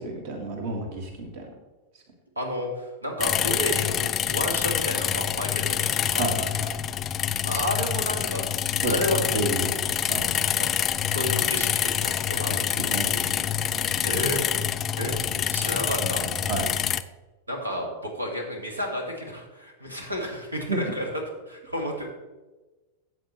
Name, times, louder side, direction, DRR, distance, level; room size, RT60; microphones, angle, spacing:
voice 1, 0.0-1.5 6.2-6.7 8.8-9.7 10.1-10.3 12.9-13.3 13.9-14.1 15.2-15.4 16.0-16.7 20.7-20.8, right 2 dB, 50° right, 3 dB, 1.8 m, -31 dB
voice 2, 2.4-6.3 7.4-8.5 8.8-9.4 10.6-10.7 11.1-12.9 14.0-14.4 15.0-15.1 15.5-16.2 17.5-21.1 21.5-22.1, equal, 80° right, 1 dB, 1.9 m, -31 dB
sound 1, 3.2-17.0, left 9 dB, 25° left, 0.4 m, -26 dB
14.0 x 7.8 x 3.1 m, 1.2 s
figure-of-eight pair, 90°, 0 cm